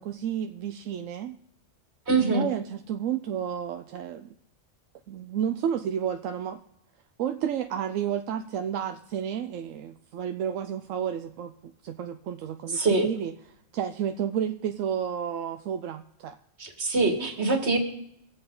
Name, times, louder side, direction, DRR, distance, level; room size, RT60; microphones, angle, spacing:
voice 1, 0.0-1.4 2.3-4.3 5.1-6.6 7.2-13.3 13.7-16.4, right 9 dB, 85° right, 7 dB, 1.0 m, -31 dB
voice 2, 2.1-2.4 12.7-13.1 16.6-17.8, right 3 dB, 60° right, 4 dB, 2.0 m, -24 dB
23.0 x 8.0 x 3.8 m, 0.76 s
omnidirectional pair, 1.3 m